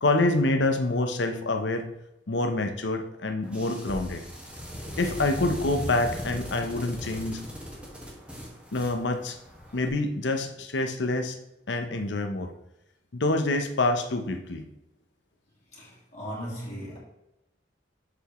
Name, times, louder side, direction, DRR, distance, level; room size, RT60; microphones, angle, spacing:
voice 1, 0.0-1.9 2.3-4.2 5.0-7.4 8.7-9.4 9.7-11.4 11.7-12.5 13.1-14.7, left 2 dB, 80° left, 0.8 m, -26 dB
sound 1, 3.4-9.9, equal, 5° right, 1.7 m, -39 dB
voice 2, 15.7-17.0, equal, 40° left, 2.6 m, -37 dB
7.1 x 6.7 x 3.1 m
head